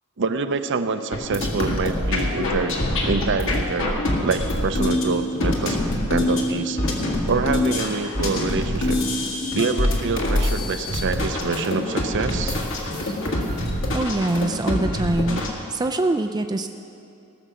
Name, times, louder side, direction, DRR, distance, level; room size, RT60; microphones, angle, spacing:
voice 1, 0.2-5.8 6.1-6.8 7.2-9.0 9.5-12.6, right 4 dB, 55° right, 9 dB, 0.6 m, -26 dB
sound 1, 1.1-15.5, left 1 dB, 60° left, 1.8 m, -25 dB
voice 2, 13.9-15.4 15.7-16.7, right 2 dB, 20° right, 6 dB, 0.3 m, -24 dB
18.5 x 6.9 x 6.2 m, 2.5 s
head